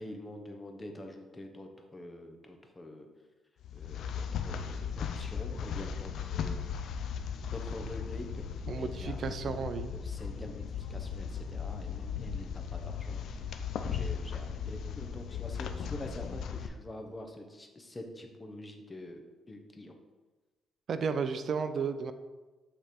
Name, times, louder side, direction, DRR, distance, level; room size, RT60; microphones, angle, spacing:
voice 1, 0.0-3.1 3.7-6.6 7.5-9.5 9.9-20.0, left 1 dB, 20° left, 3 dB, 0.9 m, -46 dB
sound 1, 3.6-16.7, left 7 dB, 70° left, 0.4 m, -37 dB
voice 2, 8.7-9.9 20.9-22.1, right 5 dB, 55° right, 10 dB, 0.4 m, -33 dB
7.2 x 3.2 x 4.4 m, 1.2 s
cardioid pair, 90°, 0 cm